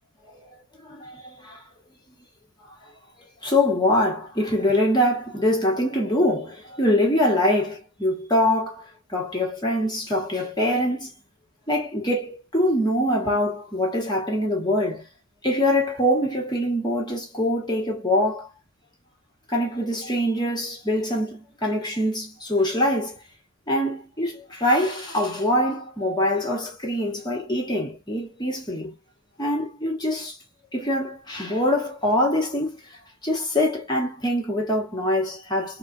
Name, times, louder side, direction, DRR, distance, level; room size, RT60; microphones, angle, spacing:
voice 1, 0.9-1.6 3.4-11.1 11.7-15.1 15.4-18.5 19.5-23.2 23.7-28.9 29.4-30.4 30.7-32.8 33.2-35.8, left 1 dB, 20° left, 1.2 m, -24 dB
4.0 x 2.3 x 2.5 m
head